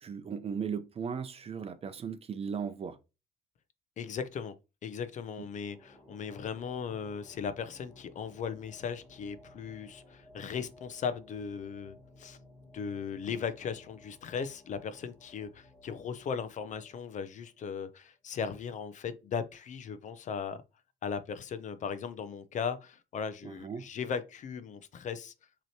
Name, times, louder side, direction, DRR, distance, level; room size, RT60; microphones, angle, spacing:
voice 1, 0.0-3.0 23.4-23.9, right 6 dB, 35° right, 0.6 m, -37 dB
voice 2, 4.0-4.6 4.8-12.4 12.7-20.6 21.0-25.3, left 6 dB, 45° left, 0.6 m, -37 dB
sound 1, 5.4-17.9, left 1 dB, 20° left, 2.7 m, -58 dB
6.0 x 3.0 x 2.8 m
cardioid pair, 110°, 17 cm